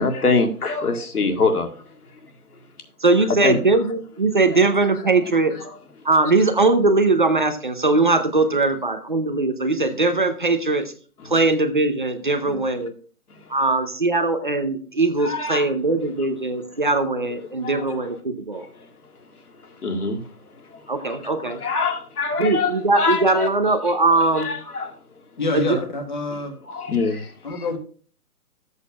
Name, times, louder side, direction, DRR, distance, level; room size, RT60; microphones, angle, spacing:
voice 1, 0.0-2.2 3.3-3.6 5.2-5.3 5.7-5.8 12.5-12.6 13.3-13.5 15.2-15.7 17.6-18.0 18.8-18.9 19.6-23.8 24.1-25.0 26.7-27.6, left 4 dB, 70° left, 2.0 m, -25 dB
voice 2, 3.0-5.5 6.0-10.9 11.2-12.9 13.5-18.7 20.9-21.6 22.4-24.5 25.5-25.8, right 3 dB, 35° right, 0.7 m, -20 dB
voice 3, 25.4-26.5 27.4-27.8, left 2 dB, 30° left, 1.4 m, -26 dB
13.5 x 8.2 x 2.3 m
hypercardioid pair, 180°, 46 cm